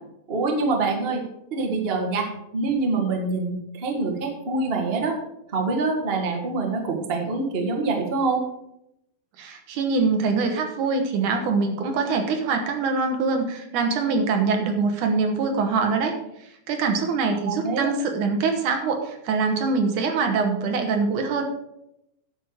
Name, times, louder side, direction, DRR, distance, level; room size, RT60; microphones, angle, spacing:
voice 1, 0.3-1.2 1.5-5.2 5.5-8.4 17.5-17.9, right 3 dB, 40° right, 0 dB, 0.8 m, -25 dB
voice 2, 9.4-16.2 16.7-21.4, right 4 dB, 65° right, 4 dB, 2.5 m, -24 dB
10.0 x 6.6 x 6.6 m, 0.83 s
omnidirectional pair, 4.2 m